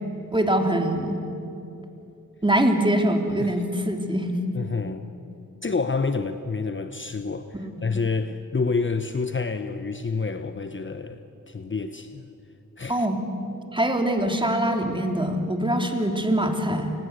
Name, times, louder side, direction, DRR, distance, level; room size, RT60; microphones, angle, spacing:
voice 1, 0.3-1.2 2.4-4.4 7.6-7.8 12.9-13.2 13.7-16.9, right 1 dB, 15° right, 4 dB, 3.1 m, -23 dB
voice 2, 4.5-5.0 5.6-7.5 7.8-11.2 11.5-12.3 12.8-13.1, left 4 dB, 35° left, 9 dB, 1.1 m, -28 dB
28.5 x 19.5 x 8.1 m, 2.8 s
cardioid pair, 60°, 33 cm